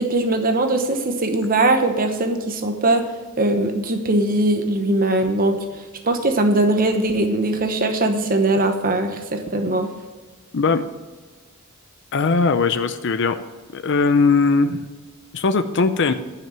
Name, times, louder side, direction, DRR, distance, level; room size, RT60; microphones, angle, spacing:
voice 1, 0.0-3.0 3.4-9.9, right 2 dB, 40° right, 5 dB, 1.0 m, -20 dB
voice 2, 12.1-13.4 13.7-14.9 15.3-16.1, left 4 dB, 55° left, 9 dB, 0.6 m, -19 dB
10.5 x 5.9 x 7.4 m, 1.4 s
head